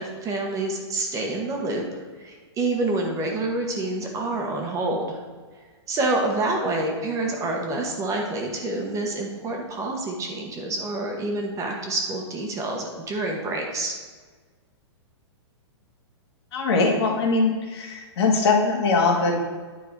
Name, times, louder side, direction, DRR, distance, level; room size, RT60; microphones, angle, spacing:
voice 1, 0.0-5.2 5.9-13.9, right 2 dB, 20° right, 1 dB, 1.2 m, -27 dB
voice 2, 16.5-19.4, left 3 dB, 65° left, 1 dB, 1.8 m, -21 dB
9.9 x 4.5 x 4.6 m, 1.4 s
hypercardioid pair, 135°, 15 cm